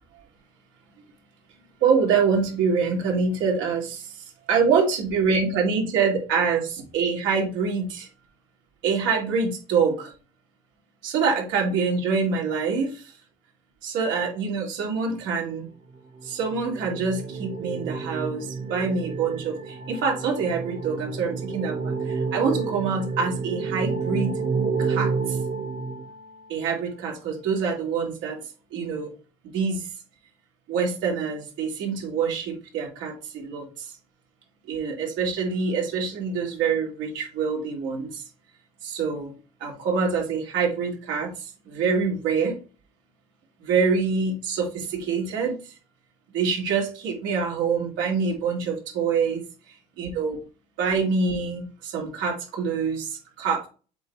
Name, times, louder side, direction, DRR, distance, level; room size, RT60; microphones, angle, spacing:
voice 1, 1.8-4.1 4.5-8.1 8.8-10.1 11.0-13.0 13.8-15.7 16.2-24.3 24.8-25.4 26.5-28.4 28.7-29.1 29.5-29.9 30.7-33.9 34.7-38.2 38.8-39.3 39.6-42.5 43.6-45.6 46.3-49.4 50.0-50.4 50.8-53.7, right 5 dB, 75° right, 0 dB, 2.6 m, -25 dB
sound 1, 15.9-26.7, right 4 dB, 30° right, 1.1 m, -30 dB
7.5 x 2.8 x 4.6 m, 0.35 s
supercardioid pair, 100°, 19 cm